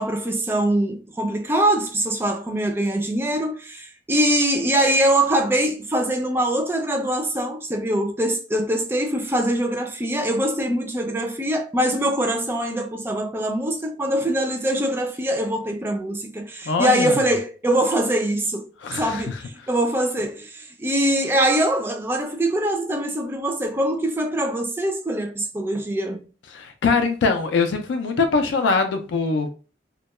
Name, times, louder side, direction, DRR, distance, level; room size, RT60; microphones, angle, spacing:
voice 1, 0.0-26.2, right 1 dB, 15° right, 0.3 m, -23 dB
voice 2, 16.7-17.2 18.8-19.4 26.5-29.5, left 4 dB, 90° left, 0.4 m, -22 dB
2.2 x 2.1 x 2.9 m
head